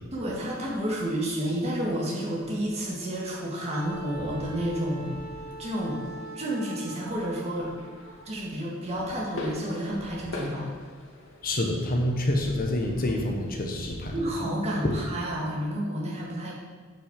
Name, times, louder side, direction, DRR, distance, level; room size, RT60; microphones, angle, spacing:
voice 1, 0.1-5.2 5.6-6.0 6.3-7.7 8.3-10.7 14.1-16.5, equal, 30° right, -4 dB, 2.3 m, -30 dB
sound 1, 1.6-14.4, left 1 dB, 65° left, 2.3 m, -44 dB
Wind instrument woodwind instrument, 3.6-8.3, right 2 dB, 75° right, 3.7 m, -43 dB
voice 2, 11.4-14.1, left 1 dB, 45° left, 1 dB, 1.3 m, -27 dB
8.7 x 6.1 x 7.5 m, 1.4 s
head